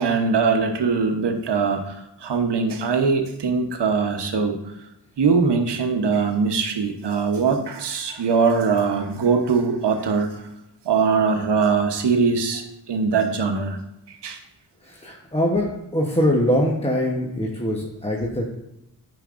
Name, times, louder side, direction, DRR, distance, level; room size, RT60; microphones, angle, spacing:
voice 1, 0.0-4.9 5.2-10.5 10.8-13.8 14.1-14.4, right 5 dB, 75° right, 5 dB, 0.9 m, -22 dB
voice 2, 14.8-18.5, equal, 15° left, -2 dB, 0.9 m, -23 dB
9.2 x 5.2 x 2.5 m, 0.86 s
cardioid pair, 65°, 42 cm